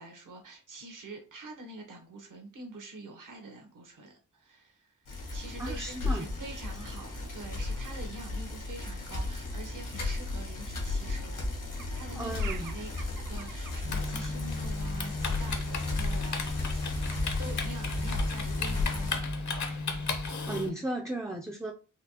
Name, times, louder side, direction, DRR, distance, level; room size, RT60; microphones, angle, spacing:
voice 1, 0.0-12.9 13.3-16.9 17.4-19.8, right 2 dB, 70° right, 1.0 m, -46 dB
Bicycle, 5.1-19.2, left 2 dB, 80° left, 1.2 m, -34 dB
voice 2, 5.6-6.3 12.1-12.7 20.5-21.7, right 2 dB, 10° right, 0.3 m, -35 dB
sound 1, 11.8-13.8 15.1-15.2 15.7-15.8 16.1-16.2 16.5-17.3 17.6-18.0, right 7 dB, 90° right, 0.5 m, -47 dB
Typing, 13.8-20.7, left 3 dB, 65° left, 0.7 m, -34 dB
4.1 x 2.3 x 2.8 m
wide cardioid pair, 110°, 32 cm